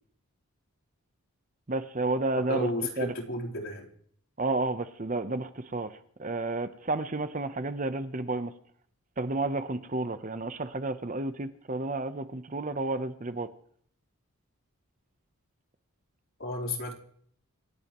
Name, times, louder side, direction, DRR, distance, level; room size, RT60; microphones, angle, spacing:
voice 1, 1.7-2.7 3.0-3.1 4.4-8.5 9.2-13.5, right 2 dB, 35° right, 0.8 m, -31 dB
voice 2, 2.5-3.9 16.4-16.9, left 1 dB, 65° left, 3.8 m, -32 dB
28.0 x 16.5 x 3.1 m
head